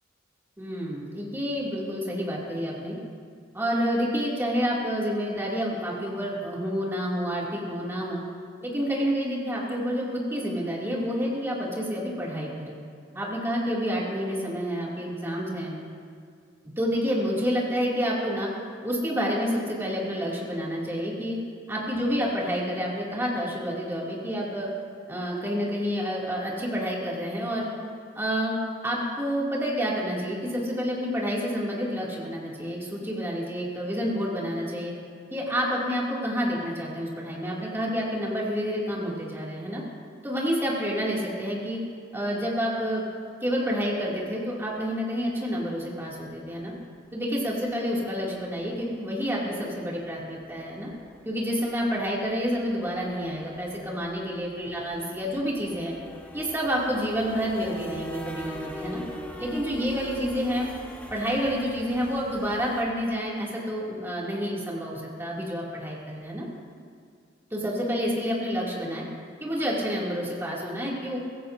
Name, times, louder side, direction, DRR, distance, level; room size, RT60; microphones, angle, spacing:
voice 1, 0.6-3.0 3.5-8.2 8.6-12.8 13.1-15.8 16.8-18.5 18.8-21.4 21.7-24.7 25.1-27.7 28.1-34.9 35.3-39.8 40.2-41.8 42.1-43.0 43.4-46.7 47.1-50.9 51.2-55.9 56.3-59.0 59.4-60.7 61.1-66.5 67.5-69.0 69.4-71.2, equal, 15° right, -5 dB, 2.4 m, -29 dB
sound 1, 48.1-48.3 48.7-48.8 49.1-49.3 49.6-49.7 50.0-62.8, equal, 10° left, 1.2 m, -43 dB
23.0 x 16.0 x 2.6 m, 2.2 s
head